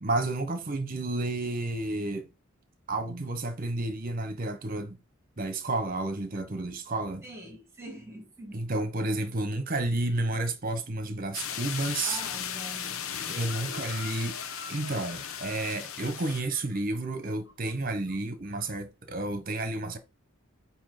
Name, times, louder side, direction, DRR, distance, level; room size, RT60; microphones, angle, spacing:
voice 1, 0.0-2.3 2.9-5.0 5.4-7.2 8.5-12.2 13.3-14.4 14.7-20.0, right 2 dB, 40° right, 1.2 m, -31 dB
voice 2, 7.2-8.6 12.0-14.2, equal, 15° right, 2.4 m, -45 dB
sound 1, 11.3-16.4, left 9 dB, 80° left, 0.9 m, -37 dB
Chicken rooster, 13.2-18.2 18.4-18.8, left 3 dB, 50° left, 2.0 m, -47 dB
8.5 x 3.0 x 5.9 m
head